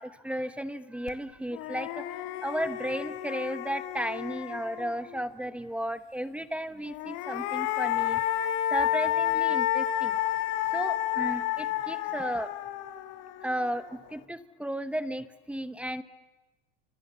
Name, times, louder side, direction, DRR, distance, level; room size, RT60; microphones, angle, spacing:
voice 1, 0.0-2.1 2.4-8.2 8.7-10.2 10.7-12.5 13.4-16.0, right 1 dB, 5° right, 11 dB, 1.0 m, -34 dB
sound 1, 1.1-1.2 1.5-5.2 6.8-14.1, left 12 dB, 60° left, 2.6 m, -31 dB
29.5 x 27.0 x 6.9 m, 1.1 s
supercardioid pair, 130°, 29 cm